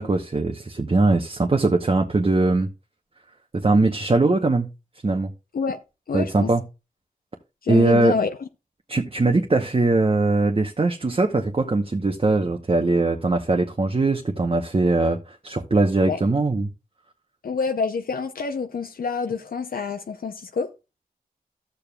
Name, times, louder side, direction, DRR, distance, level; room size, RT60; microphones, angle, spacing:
voice 1, 0.0-2.7 3.5-4.7 5.0-5.3 6.1-6.6 7.7-8.1 8.9-16.7, right 2 dB, 40° right, 0.9 m, -21 dB
voice 2, 6.1-6.5 7.6-8.3 16.1-16.2 17.4-20.7, left 5 dB, 75° left, 0.6 m, -27 dB
13.0 x 6.9 x 2.3 m
cardioid pair, 45°, 15 cm